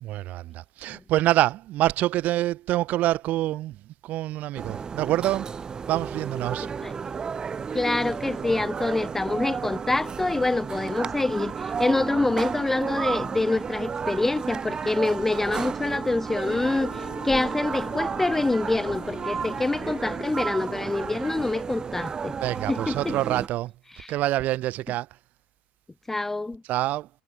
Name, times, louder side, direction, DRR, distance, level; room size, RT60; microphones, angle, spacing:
voice 1, 0.0-5.5 5.9-6.7 22.4-23.7 24.1-25.1 26.7-27.1, right 15 dB, 50° right, 2.0 m, -26 dB
sound 1, 4.5-23.5, right 6 dB, 20° right, 1.1 m, -33 dB
voice 2, 7.7-22.4 22.7-23.2 24.0-24.1 26.1-26.6, left 2 dB, 10° left, 0.5 m, -26 dB
Wind instrument woodwind instrument, 16.7-20.9, left 13 dB, 45° left, 6.8 m, -44 dB
supercardioid pair, 130°, 4 cm